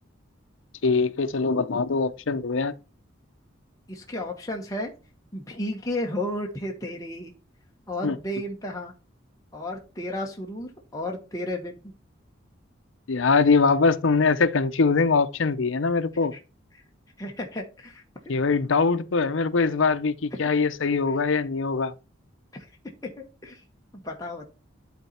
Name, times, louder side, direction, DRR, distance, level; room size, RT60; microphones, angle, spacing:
voice 1, 0.8-2.7 8.0-8.2 13.1-16.3 18.3-21.9, left 4 dB, 75° left, 0.6 m, -22 dB
voice 2, 3.9-4.9 5.3-7.3 7.9-8.9 9.5-11.9 16.3-16.4 16.7-16.8 17.2-18.3 20.4-20.5 21.1-21.2 22.5-22.7 23.0-23.6 24.0-24.5, left 1 dB, 15° left, 1.2 m, -33 dB
11.5 x 4.0 x 4.3 m
head